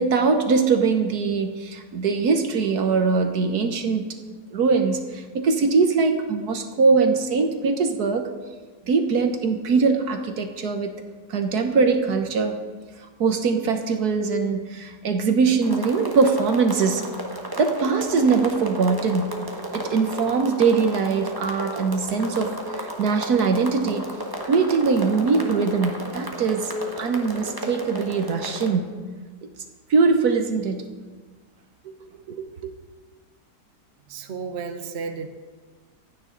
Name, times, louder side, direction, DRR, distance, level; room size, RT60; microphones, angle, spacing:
voice 1, 0.0-4.1 4.5-8.3 8.9-10.9 11.3-12.6 13.2-17.1 17.6-19.4 19.7-24.1 24.4-28.9 29.9-30.9 31.9-32.0 32.3-32.7, right 4 dB, 65° right, 6 dB, 1.6 m, -22 dB
sound 1, 15.6-28.7, equal, 15° right, 1.6 m, -34 dB
voice 2, 34.1-35.3, right 5 dB, 45° right, 6 dB, 1.2 m, -32 dB
25.5 x 9.7 x 3.9 m, 1.4 s
omnidirectional pair, 1.8 m